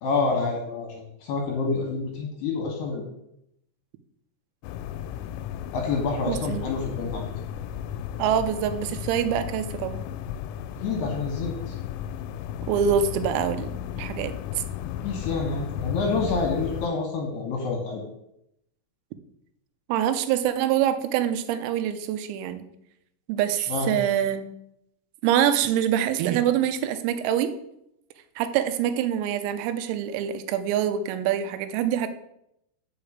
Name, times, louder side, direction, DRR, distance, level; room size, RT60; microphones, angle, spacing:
voice 1, 0.0-3.0 5.7-7.3 10.8-11.8 15.0-18.0 23.7-23.9, left 4 dB, 70° left, 1 dB, 2.6 m, -28 dB
sound 1, 4.6-16.9, left 10 dB, 85° left, 3.2 m, -34 dB
voice 2, 6.3-6.6 8.2-10.0 12.7-14.4 19.9-22.7 23.3-24.5 25.2-27.5 28.4-32.1, right 9 dB, 85° right, 10 dB, 3.4 m, -25 dB
6.7 x 5.9 x 7.1 m, 0.79 s
omnidirectional pair, 6.0 m